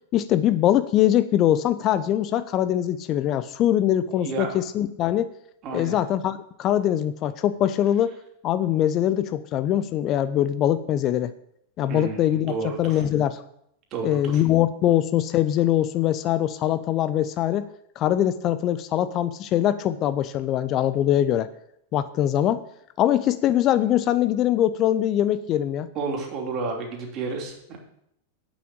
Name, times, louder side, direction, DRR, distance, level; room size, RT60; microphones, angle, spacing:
voice 1, 0.1-5.3 5.7-8.1 8.4-11.3 11.8-13.4 14.0-17.6 18.0-21.5 21.9-22.6 23.0-25.9, left 11 dB, 35° left, 13 dB, 0.6 m, -22 dB
voice 2, 4.2-4.6 5.6-6.0 11.9-13.0 13.9-14.4 25.9-27.8, right 4 dB, 35° right, 1 dB, 3.0 m, -31 dB
8.5 x 7.2 x 8.6 m, 0.75 s
figure-of-eight pair, 90°, 0 cm